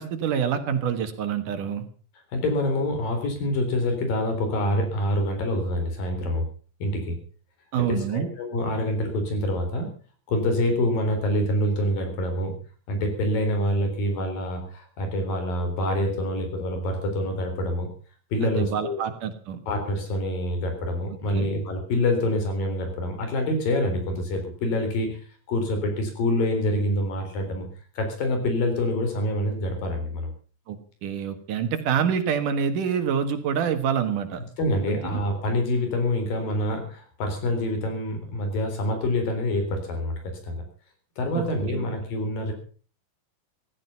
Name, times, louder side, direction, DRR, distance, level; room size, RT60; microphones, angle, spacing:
voice 1, 0.0-1.8 7.7-8.3 18.4-19.6 21.3-21.5 30.7-34.4 34.9-35.2 41.3-41.5 41.7-41.9, right 7 dB, 70° right, 9 dB, 3.0 m, -27 dB
voice 2, 2.3-6.4 6.8-7.2 7.8-9.9 10.3-12.6 12.9-17.9 18.3-19.0 19.7-27.7 28.0-30.3 34.6-40.6 41.2-42.5, left 1 dB, 85° left, 5 dB, 5.7 m, -26 dB
15.5 x 14.0 x 5.6 m, 0.41 s
omnidirectional pair, 3.9 m